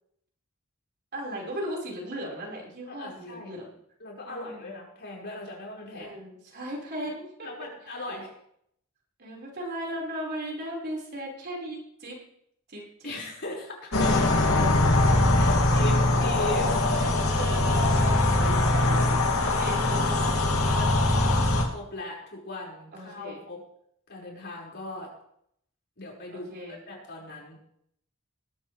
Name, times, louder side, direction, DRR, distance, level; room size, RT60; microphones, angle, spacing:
voice 1, 1.1-3.7 4.2-4.7 5.9-7.5 7.9-8.2 9.2-12.2 12.7-13.3 14.3-14.7 16.9-18.6 18.8-21.0 22.9-23.4 26.3-26.8, equal, 50° right, -2 dB, 5.0 m, -37 dB
voice 2, 2.9-3.5 4.0-6.1 7.4-8.3 13.0-14.8 15.3-17.1 19.4-19.6 21.7-23.6 24.1-25.1 26.0-27.6, left 2 dB, 55° left, -3 dB, 5.4 m, -39 dB
sound 1, 13.9-21.6, left 2 dB, 75° left, 2.5 m, -22 dB
20.0 x 13.5 x 3.4 m, 0.73 s
head